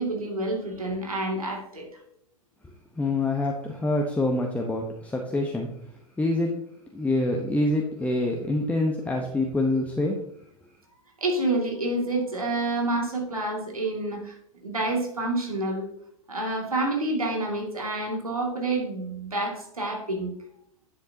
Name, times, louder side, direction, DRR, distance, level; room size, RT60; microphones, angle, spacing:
voice 1, 0.0-1.9 11.2-14.3 14.6-15.9 16.3-20.3, right 2 dB, 85° right, 1 dB, 2.3 m, -28 dB
voice 2, 3.0-5.7 6.2-6.5 6.9-10.2, left 2 dB, 10° left, 0 dB, 1.0 m, -26 dB
10.5 x 7.7 x 2.8 m, 0.71 s
figure-of-eight pair, 100°, 18 cm